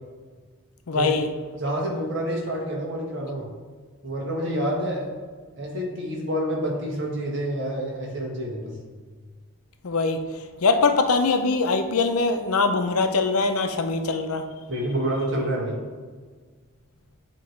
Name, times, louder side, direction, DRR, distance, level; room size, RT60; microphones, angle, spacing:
voice 1, 0.9-1.3 9.8-10.2 10.6-14.4, left 3 dB, 85° left, 7 dB, 0.6 m, -22 dB
voice 2, 1.6-3.5 4.0-5.1 5.6-8.8 14.7-15.8, right 1 dB, 55° right, -1 dB, 1.5 m, -28 dB
8.5 x 3.1 x 4.5 m, 1.5 s
head